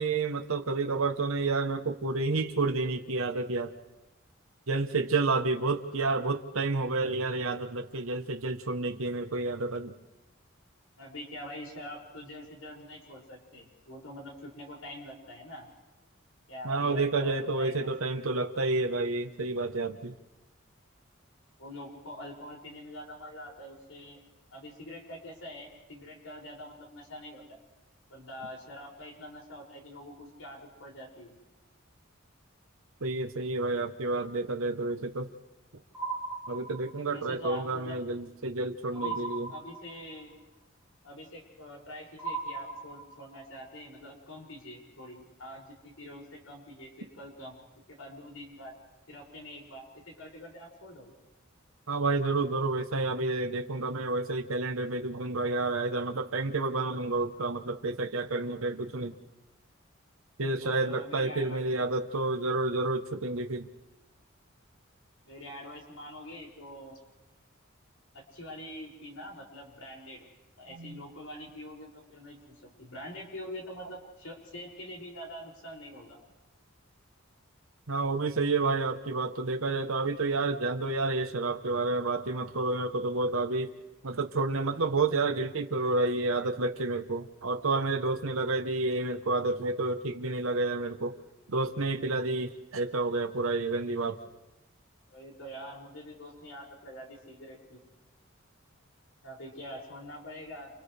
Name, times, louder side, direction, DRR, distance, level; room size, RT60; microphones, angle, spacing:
voice 1, 0.0-3.7 4.7-9.9 16.6-20.1 33.0-35.3 36.5-39.5 51.9-59.1 60.4-63.7 70.7-71.0 77.9-83.7 84.0-91.2 91.5-94.2, right 3 dB, 85° right, 5 dB, 1.1 m, -30 dB
voice 2, 11.0-15.7 16.5-18.2 21.6-24.2 24.5-27.6 28.1-31.3 37.1-38.0 38.9-39.2 39.5-40.3 41.0-47.6 47.9-48.7 49.1-51.1 60.6-61.6 65.2-67.0 68.1-70.2 70.6-72.4 72.6-76.2 95.1-97.8 99.2-100.7, left 1 dB, 80° left, -2 dB, 6.4 m, -45 dB
sound 1, 35.9-37.2 39.0-40.2 42.2-43.4, right 4 dB, 10° right, 3.2 m, -37 dB
29.5 x 29.0 x 3.4 m, 1.0 s
head